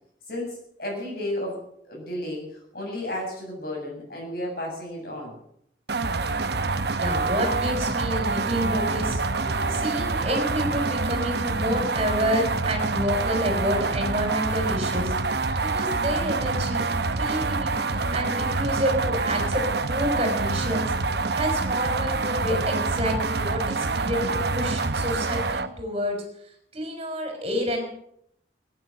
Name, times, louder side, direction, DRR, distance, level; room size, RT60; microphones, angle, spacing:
voice 1, 0.3-1.6 1.8-5.3 9.4-9.8, left 1 dB, 55° left, -1 dB, 7.6 m, -33 dB
sound 1, 5.9-25.7, right 3 dB, 60° right, 0.9 m, -26 dB
voice 2, 6.9-9.2 9.7-15.1 15.6-26.2 26.7-27.8, equal, 30° right, 3 dB, 4.0 m, -29 dB
17.5 x 10.0 x 7.8 m, 0.73 s
head